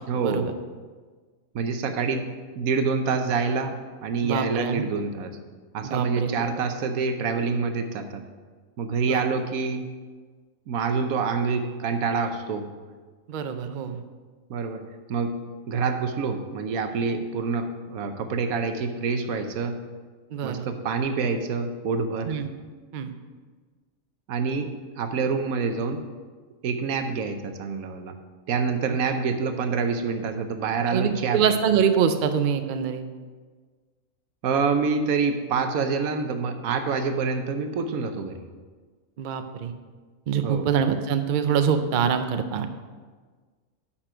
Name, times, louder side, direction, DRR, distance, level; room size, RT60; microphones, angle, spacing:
voice 1, 0.1-0.5 1.5-2.3 2.6-5.3 5.7-8.2 8.8-9.9 10.7-12.7 14.5-14.8 15.1-15.3 15.7-19.7 20.4-22.3 24.3-26.0 26.6-28.2 28.5-31.4 34.4-38.4 40.4-40.7, right 5 dB, 80° right, 7 dB, 1.2 m, -26 dB
voice 2, 4.2-4.8 5.8-6.3 9.1-9.2 13.3-14.0 20.3-20.7 22.3-22.5 22.9-23.1 30.9-33.0 39.2-39.7 40.3-42.7, right 7 dB, 60° right, 8 dB, 0.5 m, -24 dB
8.9 x 5.8 x 5.0 m, 1.5 s
omnidirectional pair, 1.5 m